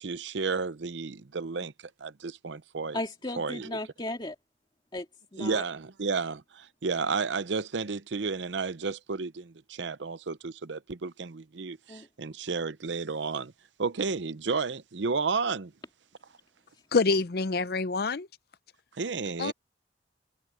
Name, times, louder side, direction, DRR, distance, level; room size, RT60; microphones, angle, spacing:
voice 1, 0.0-1.7 2.0-3.0 3.4-3.7 5.4-13.5 13.8-15.7 19.0-19.5, right 4 dB, 75° right, 0.7 m, -32 dB
voice 2, 2.9-4.4 4.9-5.1 5.3-5.6 11.9-12.1, left 1 dB, 25° left, 2.5 m, -35 dB
voice 3, 16.9-18.3 19.4-19.5, left 4 dB, 55° left, 0.6 m, -26 dB
head